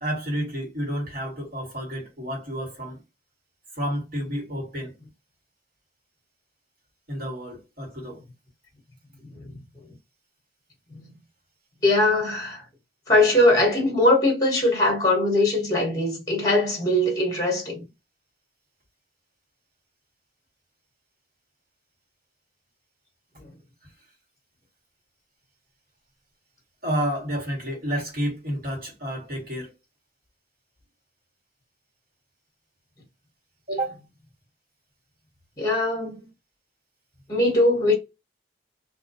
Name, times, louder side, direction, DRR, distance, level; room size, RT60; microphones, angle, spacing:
voice 1, 0.0-3.0 3.7-5.0 7.1-8.2 26.8-29.7 33.7-34.0, equal, 55° right, 1.6 m, -30 dB
voice 2, 11.8-12.6 13.1-17.8 23.4-23.5 35.6-36.2 37.3-37.9, left 1 dB, 20° left, 0.9 m, -21 dB
2.5 x 2.1 x 2.7 m
head